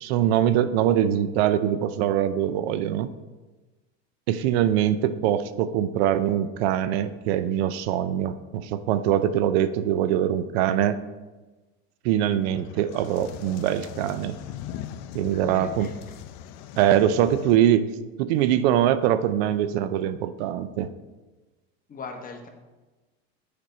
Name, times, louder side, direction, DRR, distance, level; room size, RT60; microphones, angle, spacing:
voice 1, 0.0-3.1 4.3-11.0 12.0-14.4 15.1-15.9 16.8-17.9 18.2-20.9, right 11 dB, 75° right, 13 dB, 0.5 m, -23 dB
sound 1, 12.3-17.6, left 11 dB, 60° left, 0.5 m, -40 dB
voice 2, 15.2-16.2 21.9-22.5, left 4 dB, 25° left, 3 dB, 1.1 m, -40 dB
6.7 x 5.2 x 4.2 m, 1.2 s
supercardioid pair, 110°, 31 cm